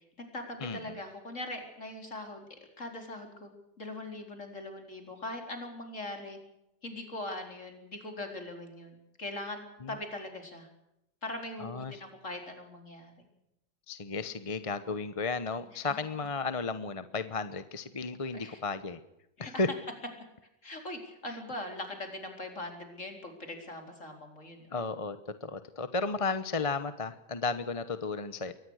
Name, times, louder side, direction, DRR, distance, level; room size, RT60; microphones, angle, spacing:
voice 1, 0.0-2.5 2.8-3.5 3.8-6.4 6.8-10.7 11.2-13.1 15.7-16.0 18.3-18.6 19.4-19.5 20.6-24.6, left 2 dB, 45° left, 4 dB, 4.7 m, -41 dB
voice 2, 0.6-0.9 9.8-9.9 11.6-12.0 13.9-19.0 19.4-19.7 24.7-28.5, left 3 dB, 25° left, 12 dB, 0.8 m, -34 dB
23.5 x 19.0 x 6.5 m, 0.85 s
omnidirectional pair, 1.9 m